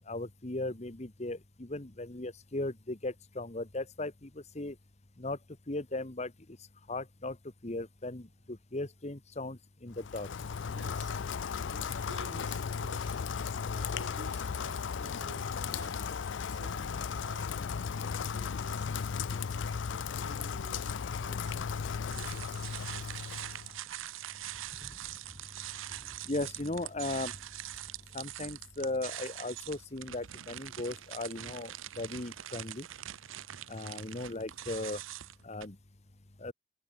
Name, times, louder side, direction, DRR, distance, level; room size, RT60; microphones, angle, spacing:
voice 1, 0.0-4.7 5.2-5.4 5.7-6.3 6.9-7.4 7.6-10.3 26.2-27.3 28.1-31.7 32.0-32.9 33.7-35.0 35.4-35.8 36.4-36.5, left 2 dB, 35° left, 1.3 m, -37 dB
Rain, 9.9-23.7, left 6 dB, 65° left, 0.5 m, -36 dB
voice 2, 10.7-11.2 11.6-13.2 13.7-16.1 16.5-19.8 20.2-23.1, right 2 dB, 60° right, 3.1 m, -52 dB
Thunder / Rain, 14.8-32.3, left 1 dB, 15° left, 3.5 m, -59 dB
sound 1, 22.1-35.7, right 13 dB, 80° right, 0.7 m, -43 dB
head